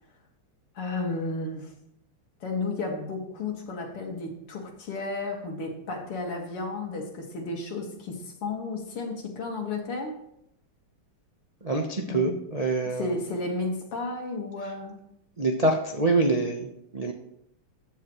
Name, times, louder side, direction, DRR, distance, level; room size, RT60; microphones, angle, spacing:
voice 1, 0.8-1.7 2.4-10.2 12.1-12.3 13.0-15.0, left 3 dB, 85° left, 1 dB, 2.8 m, -33 dB
voice 2, 11.6-13.2 15.4-17.1, right 2 dB, 70° right, 1 dB, 0.3 m, -26 dB
15.0 x 10.5 x 3.1 m, 0.78 s
omnidirectional pair, 2.4 m